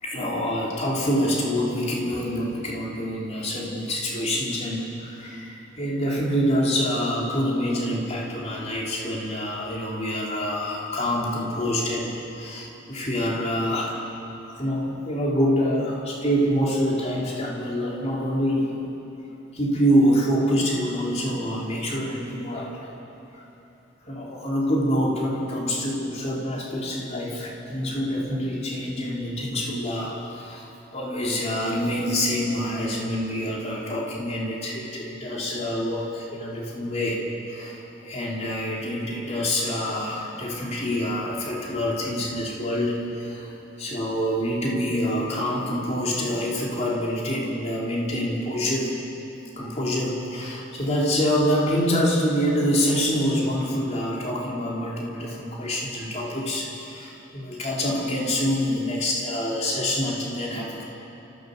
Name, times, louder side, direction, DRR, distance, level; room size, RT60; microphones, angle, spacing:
voice 1, 0.0-14.0 14.6-18.8 19.5-22.9 23.3-23.4 24.1-37.2 37.5-37.8 38.0-43.5 43.8-48.9 49.6-60.8, equal, 35° left, -3 dB, 3.5 m, -26 dB
29.5 x 15.0 x 6.6 m, 3.0 s
head